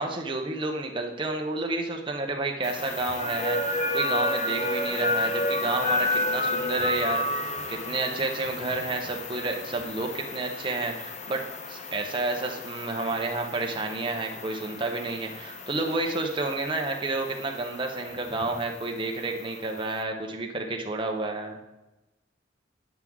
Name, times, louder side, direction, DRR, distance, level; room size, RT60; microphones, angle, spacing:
voice 1, 0.0-21.6, right 2 dB, 25° right, 2 dB, 0.7 m, -30 dB
sound 1, 2.6-20.0, left 1 dB, 35° left, 0.7 m, -32 dB
9.4 x 6.0 x 3.6 m, 1.0 s
head